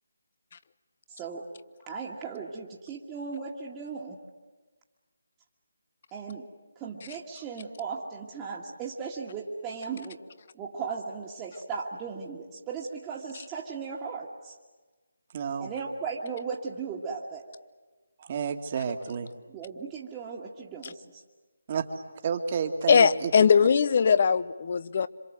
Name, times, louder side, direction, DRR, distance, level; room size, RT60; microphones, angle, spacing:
voice 1, 1.1-1.4 1.9-4.2 6.1-6.5 6.8-10.2 10.5-14.6 15.6-17.4 19.5-21.2, right 5 dB, 15° right, -4 dB, 1.9 m, -37 dB
voice 2, 15.3-15.7 18.2-19.3 21.7-21.9 22.2-23.3, right 6 dB, 35° right, 6 dB, 2.1 m, -30 dB
voice 3, 22.9-25.1, left 6 dB, 45° left, 16 dB, 0.8 m, -20 dB
27.0 x 26.0 x 7.8 m, 1.3 s
figure-of-eight pair, 155°, 0 cm